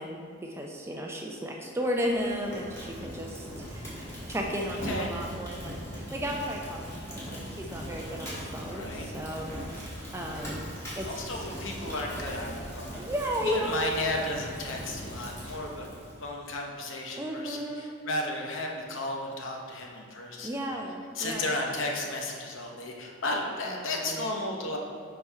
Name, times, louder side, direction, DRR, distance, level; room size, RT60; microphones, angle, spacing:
voice 1, 0.0-3.5 3.7-10.7 11.0-11.5 12.9-14.1 17.2-18.0 20.4-21.5 23.7-24.3, equal, 10° right, 0 dB, 0.4 m, -34 dB
Fire, 1.9-16.3, equal, 15° left, 1.3 m, -40 dB
voice 2, 4.8-5.2 8.7-9.1 11.0-13.0 13.4-15.9 16.2-20.5 21.1-24.8, left 2 dB, 60° left, 1 dB, 0.8 m, -34 dB
4.7 x 4.2 x 5.1 m, 2.3 s
head